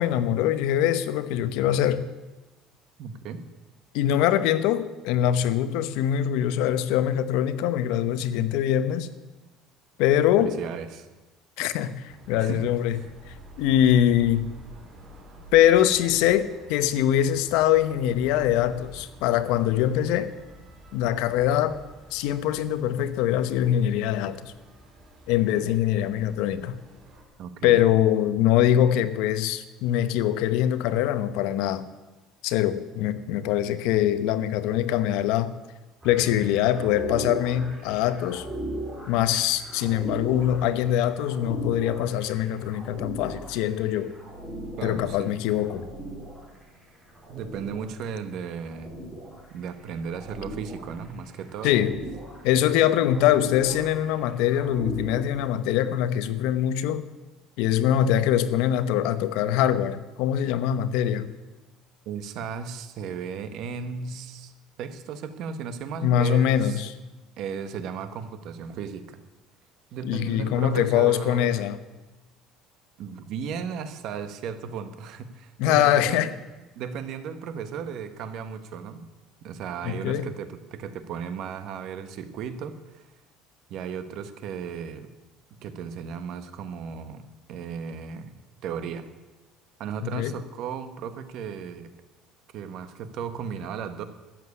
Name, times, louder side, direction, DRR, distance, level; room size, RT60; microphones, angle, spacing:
voice 1, 0.0-2.1 3.9-9.1 10.0-10.5 11.6-13.0 13.3-14.5 15.5-20.3 20.9-21.8 22.1-24.5 25.3-26.8 27.6-31.9 32.4-35.5 36.0-38.5 39.1-44.1 44.8-45.9 51.6-52.0 52.4-57.1 57.6-61.3 66.0-66.9 70.0-71.8 75.6-76.3 79.8-80.3 90.1-90.3, left 11 dB, 75° left, 0.9 m, -23 dB
voice 2, 3.0-3.5 10.4-11.1 12.4-12.7 27.4-27.8 44.8-45.4 47.3-48.9 49.5-51.8 62.0-64.5 64.8-66.9 67.4-69.2 69.9-71.6 73.0-76.3 76.7-79.1 79.4-83.0 83.7-85.1 85.6-88.3 88.6-89.0 89.8-91.9 92.5-94.0, right 6 dB, 50° right, 1.2 m, -35 dB
sound 1, 12.1-27.2, right 1 dB, 35° right, 3.5 m, -49 dB
sound 2, 36.0-55.2, right 1 dB, 10° right, 4.3 m, -38 dB
13.5 x 7.7 x 9.6 m
cardioid pair, 160°, 0 cm